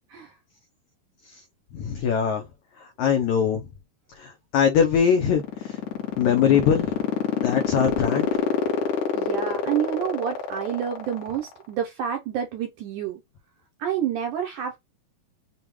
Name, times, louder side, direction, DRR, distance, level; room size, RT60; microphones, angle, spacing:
voice 1, 1.7-2.4 2.8-3.6 4.2-5.8 6.2-6.9 7.4-8.4, left 7 dB, 90° left, 1.6 m, -22 dB
sound 1, 5.0-11.6, left 9 dB, 65° left, 2.2 m, -25 dB
voice 2, 9.2-13.2 13.8-14.8, right 9 dB, 75° right, 1.9 m, -28 dB
7.0 x 2.3 x 3.0 m
omnidirectional pair, 4.4 m